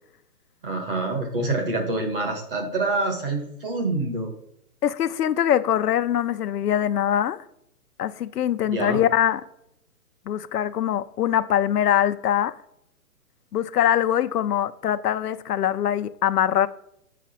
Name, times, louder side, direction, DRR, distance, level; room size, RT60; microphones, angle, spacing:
voice 1, 0.6-4.3 8.6-9.0, right 2 dB, 35° right, 1.5 m, -26 dB
voice 2, 4.8-7.4 8.0-9.4 10.3-12.6 13.5-16.7, left 10 dB, 75° left, 0.6 m, -23 dB
7.3 x 5.0 x 4.2 m
hypercardioid pair, 170°, 47 cm